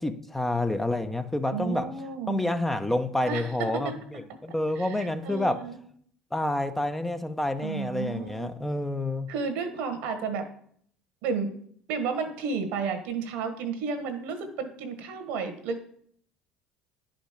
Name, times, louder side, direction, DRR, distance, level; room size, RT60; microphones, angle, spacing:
voice 1, 0.0-1.9 2.3-5.6 6.3-9.3, left 1 dB, 10° left, 7 dB, 0.8 m, -28 dB
voice 2, 1.5-2.4 3.3-3.9 4.7-5.8 7.6-8.5 9.3-10.4 11.2-11.5 11.9-15.8, right 5 dB, 70° right, 9 dB, 1.4 m, -32 dB
10.5 x 5.2 x 5.1 m, 0.63 s
hypercardioid pair, 70°, 3 cm